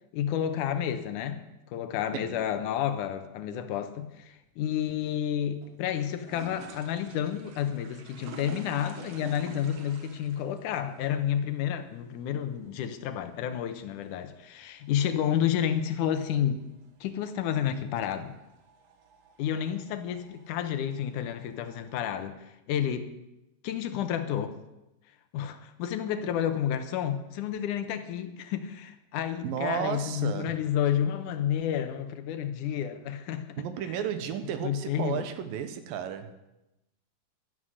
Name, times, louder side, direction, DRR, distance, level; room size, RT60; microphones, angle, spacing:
voice 1, 0.1-16.6 17.0-18.3 19.4-23.1 23.6-24.6 25.3-34.0 34.6-35.2, left 9 dB, 75° left, 2.2 m, -30 dB
voice 2, 2.1-2.5 29.4-30.6 33.6-36.4, right 9 dB, 85° right, 2.8 m, -33 dB
sound 1, 4.1-22.3, right 4 dB, 60° right, 2.0 m, -51 dB
11.5 x 11.0 x 6.4 m
omnidirectional pair, 3.9 m